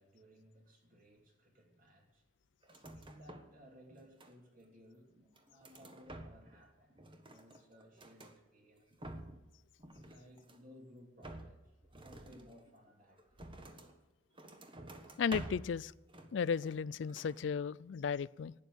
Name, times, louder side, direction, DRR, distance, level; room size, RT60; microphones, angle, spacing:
voice 1, 0.0-2.2 2.9-5.1 5.5-9.2 10.0-13.4, equal, 45° right, 3.1 m, -60 dB
sound 1, 2.6-3.6 3.9-4.7 5.1-6.6 6.9-8.4 8.8-9.5 9.8-10.7 11.2-14.0 14.3-15.8 16.1-16.8 17.1-17.4, right 1 dB, 25° right, 1.3 m, -50 dB
voice 2, 15.2-15.9 16.3-18.5, left 6 dB, 70° left, 0.4 m, -35 dB
12.0 x 9.3 x 8.4 m
head